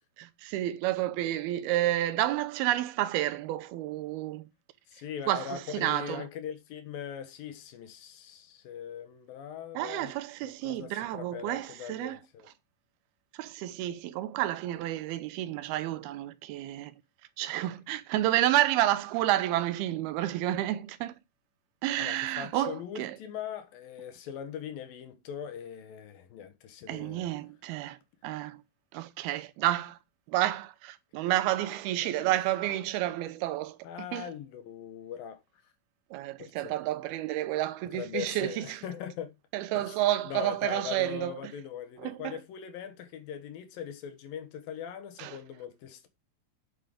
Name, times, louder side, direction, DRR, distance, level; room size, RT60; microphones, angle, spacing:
voice 1, 0.2-4.5 5.3-6.2 9.8-12.2 13.4-16.9 17.4-21.1 21.8-23.2 26.9-28.0 28.2-28.6 28.9-30.0 30.3-33.8 34.1-34.3 36.1-38.8 39.5-41.3 42.0-42.4 45.2-45.4, right 14 dB, 85° right, 2.6 m, -30 dB
voice 2, 4.9-10.1 10.4-12.5 22.0-27.3 32.0-32.3 33.8-35.4 36.4-36.8 37.9-39.3 39.7-40.0 40.3-46.1, left 9 dB, 70° left, 2.9 m, -41 dB
9.3 x 6.7 x 5.0 m
omnidirectional pair, 4.5 m